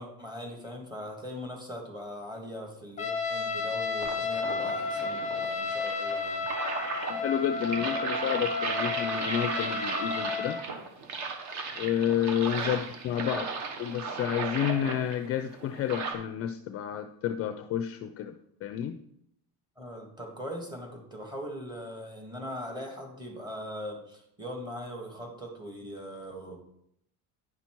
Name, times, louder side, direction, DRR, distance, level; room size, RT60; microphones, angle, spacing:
voice 1, 0.0-6.4 12.6-12.7 19.8-26.6, equal, 10° right, 1 dB, 1.6 m, -40 dB
Trumpet, 3.0-10.6, left 4 dB, 20° left, 0.8 m, -32 dB
sound 1, 4.0-16.1, right 4 dB, 45° right, 1.3 m, -36 dB
voice 2, 7.1-10.6 11.7-13.5 13.8-18.4 18.6-19.0, left 10 dB, 40° left, 8 dB, 0.4 m, -30 dB
9.9 x 5.7 x 4.5 m, 0.73 s
cardioid pair, 170°, 39 cm